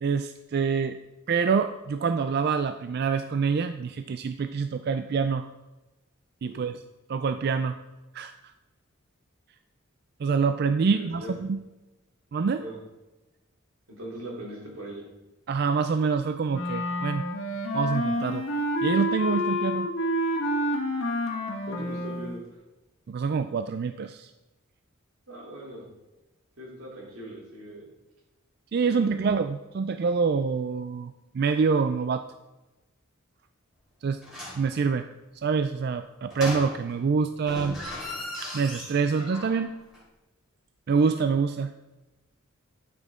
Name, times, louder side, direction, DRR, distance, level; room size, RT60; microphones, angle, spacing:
voice 1, 0.0-1.0 1.3-5.4 6.4-6.7 7.1-7.8 8.1-8.3 10.2-11.6 12.3-12.6 15.5-17.2 17.7-18.4 18.8-19.9 23.1-24.3 28.7-32.2 34.0-34.2 34.6-35.1 35.4-37.8 38.5-39.7 40.9-41.7, right 5 dB, 50° right, 9 dB, 0.3 m, -26 dB
voice 2, 10.9-11.3 12.6-12.8 14.0-15.0 21.7-22.6 25.3-25.9 26.6-27.9 28.9-29.2, right 1 dB, 90° right, -3 dB, 3.2 m, -40 dB
Wind instrument woodwind instrument, 16.5-22.4, equal, 75° left, 1.5 m, -28 dB
sound 1, 34.2-34.7 36.3-37.1 37.4-39.7 39.9-40.0, left 1 dB, 5° right, 3.1 m, -37 dB
12.0 x 5.8 x 3.6 m, 1.1 s
head